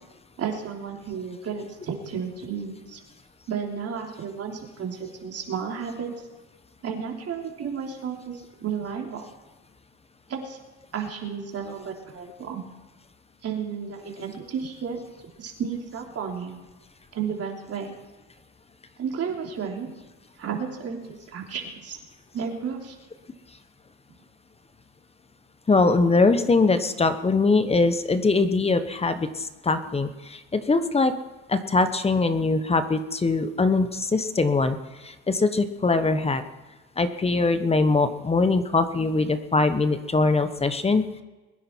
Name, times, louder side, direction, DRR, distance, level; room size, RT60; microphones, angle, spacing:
voice 1, 0.4-3.0 3.5-6.1 6.8-9.2 10.3-10.6 10.9-12.6 13.4-15.0 15.4-16.6 17.1-17.9 19.0-19.9 20.4-22.0 22.3-23.0, right 6 dB, 40° right, 1 dB, 3.3 m, -32 dB
voice 2, 25.7-31.1 31.5-34.8 35.0-36.4 37.0-41.0, left 3 dB, 15° left, 11 dB, 1.1 m, -22 dB
22.0 x 10.0 x 4.5 m, 1.2 s
supercardioid pair, 95°, 36 cm